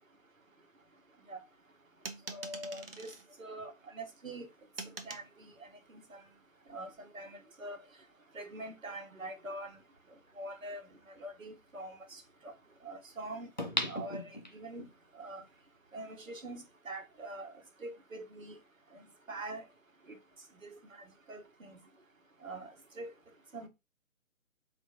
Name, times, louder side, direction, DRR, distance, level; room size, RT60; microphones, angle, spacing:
sound 1, 2.1-3.2 4.8-5.3, right 3 dB, 45° right, 0.7 m, -44 dB
voice 1, 2.3-3.1 3.4-4.5 5.0-6.2 6.7-7.8 8.3-9.8 10.4-10.9 11.2-12.5 12.8-13.5 13.9-14.9 15.1-15.4 15.9-17.5 17.8-18.6 18.9-19.0 19.3-19.6 20.6-20.7 21.3-21.8 22.4-23.1 23.5-23.7, right 2 dB, 70° right, 1.1 m, -44 dB
sound 2, 10.0-10.1 13.6-14.9 15.4-15.5, left 1 dB, 35° left, 0.4 m, -36 dB
4.3 x 2.4 x 2.7 m
figure-of-eight pair, 145°, 41 cm